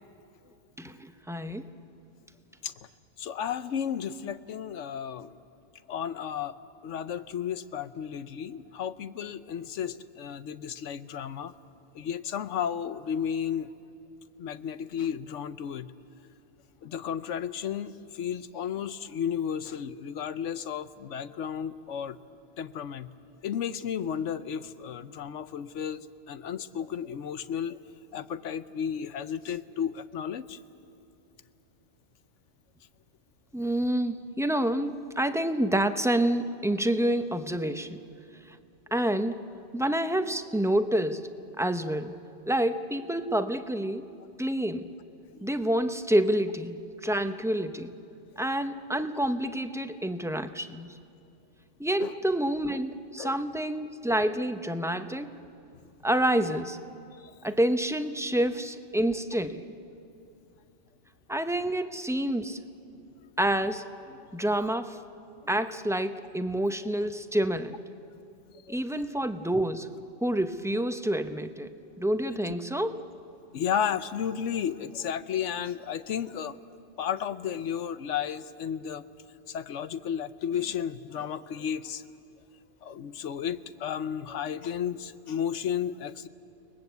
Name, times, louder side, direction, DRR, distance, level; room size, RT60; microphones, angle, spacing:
voice 1, 0.8-1.7 33.5-38.0 38.5-38.6 38.9-39.5 39.7-41.3 41.6-42.2 42.5-44.0 44.4-44.9 45.4-47.9 48.4-50.9 51.8-55.3 56.0-56.8 57.4-59.7 61.3-62.6 63.4-65.0 65.5-67.8 68.7-69.9 70.2-73.0, right 1 dB, 5° right, 9 dB, 0.5 m, -28 dB
voice 2, 3.2-5.3 5.9-6.5 6.8-11.5 11.9-13.7 14.4-15.9 16.8-22.2 22.6-23.1 23.4-27.8 28.1-30.6 45.4-45.5 52.0-52.1 53.2-53.4 68.7-68.8 73.5-76.6 77.0-79.0 79.5-82.0 82.8-86.3, left 8 dB, 90° left, 13 dB, 1.1 m, -33 dB
29.5 x 20.0 x 8.1 m, 2.6 s
omnidirectional pair, 1.2 m